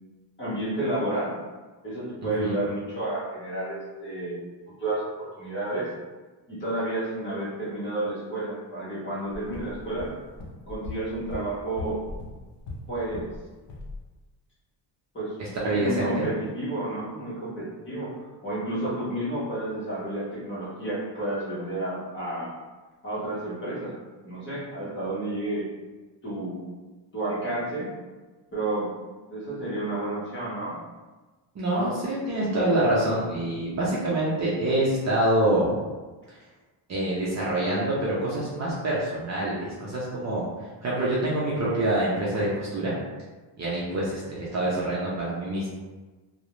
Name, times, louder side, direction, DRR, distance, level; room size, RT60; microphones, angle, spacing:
voice 1, 0.4-1.3 1.8-4.4 4.8-5.9 6.5-10.1 10.7-12.0 12.9-13.3 15.1-15.3 15.6-18.1 18.4-22.5 23.0-23.9 24.2-25.6 26.2-26.6 27.1-27.9 28.5-28.9 29.3-30.8, right 1 dB, 25° left, -8 dB, 0.8 m, -31 dB
sound 1, 9.3-13.4 13.7-14.0, left 2 dB, 60° left, 0.5 m, -39 dB
voice 2, 15.6-16.2 31.6-35.8 36.9-40.5 40.8-42.9 43.6-45.7, right 1 dB, 40° right, -7 dB, 0.5 m, -26 dB
2.4 x 2.0 x 2.9 m, 1.2 s
cardioid pair, 170°, 47 cm